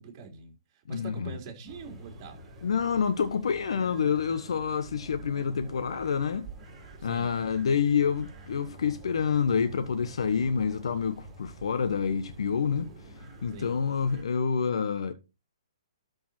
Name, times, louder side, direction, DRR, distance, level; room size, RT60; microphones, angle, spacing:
voice 1, 0.0-2.4 7.0-7.4 13.5-13.8, right 4 dB, 35° right, 4.2 m, -43 dB
voice 2, 0.9-1.3 2.6-6.5 7.0-12.9 13.4-15.1, left 6 dB, 70° left, 1.3 m, -28 dB
sound 1, 1.7-14.2, right 2 dB, 10° right, 4.3 m, -48 dB
13.0 x 5.4 x 4.4 m
hypercardioid pair, 140°, 3 cm